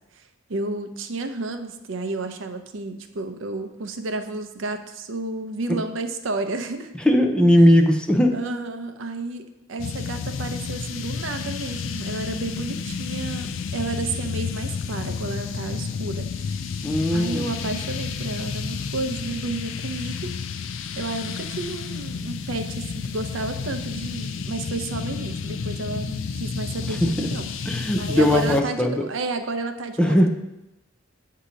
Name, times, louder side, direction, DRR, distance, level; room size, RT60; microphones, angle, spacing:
voice 1, 0.5-6.9 8.3-16.6 17.1-20.3 21.0-27.5 28.0-30.3, right 2 dB, 80° right, 7 dB, 0.6 m, -31 dB
voice 2, 7.1-8.4 16.8-17.4 26.9-27.3 27.7-29.0 30.0-30.3, equal, 5° left, 3 dB, 0.5 m, -18 dB
sound 1, 9.8-28.6, left 5 dB, 80° left, 0.4 m, -31 dB
7.6 x 2.8 x 4.9 m, 0.94 s
head